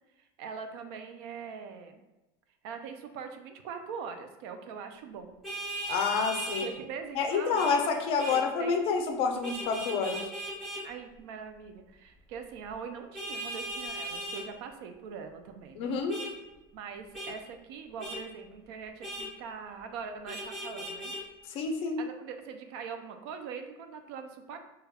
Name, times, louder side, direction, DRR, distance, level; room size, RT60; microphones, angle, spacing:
voice 1, 0.4-2.0 2.6-5.3 6.5-7.7 8.3-8.8 10.8-16.0 16.7-21.1 22.0-24.6, right 6 dB, 70° right, 6 dB, 0.4 m, -42 dB
Vehicle horn car horn honking, 5.4-6.7 7.5-7.8 8.2-8.4 9.4-10.8 13.1-14.4 16.1-16.3 17.1-17.3 18.0-18.2 19.0-19.3 20.3-21.2, right 1 dB, ahead, 0.9 m, -37 dB
voice 2, 5.9-6.7 7.2-10.3 15.8-16.2 21.5-22.0, left 5 dB, 45° left, 4 dB, 0.4 m, -28 dB
3.3 x 2.2 x 2.2 m, 1.0 s
supercardioid pair, 130°, 14 cm